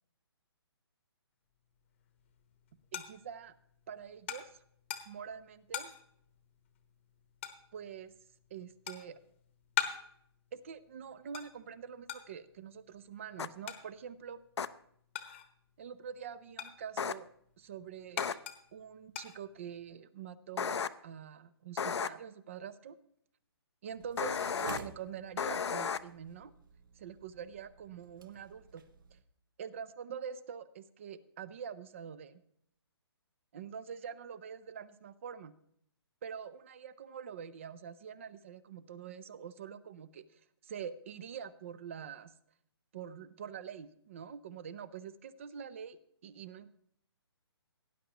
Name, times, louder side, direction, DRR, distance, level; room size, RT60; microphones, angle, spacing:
sound 1, 1.9-15.7 16.0-20.0, left 10 dB, 25° left, 1.0 m, -43 dB
voice 1, 2.9-3.5 3.9-4.6 5.1-5.9 7.7-8.1 8.5-9.2 10.5-14.4 15.8-17.3 17.6-18.4 18.7-23.0 23.8-26.5 27.0-28.8 29.1-29.2 29.6-32.4 33.5-35.5 36.2-42.3 42.9-46.7, right 7 dB, 30° right, 16 dB, 0.5 m, -45 dB
sound 2, 13.4-13.5 14.6-14.7 17.0-17.1 18.2-18.3 20.6-20.9 21.8-22.1 24.2-24.8 25.4-26.0, left 6 dB, 85° left, 0.6 m, -33 dB
sound 3, 23.9-29.2, right 5 dB, 50° right, 1.1 m, -52 dB
17.5 x 9.9 x 2.9 m, 0.67 s
hypercardioid pair, 165°, 14 cm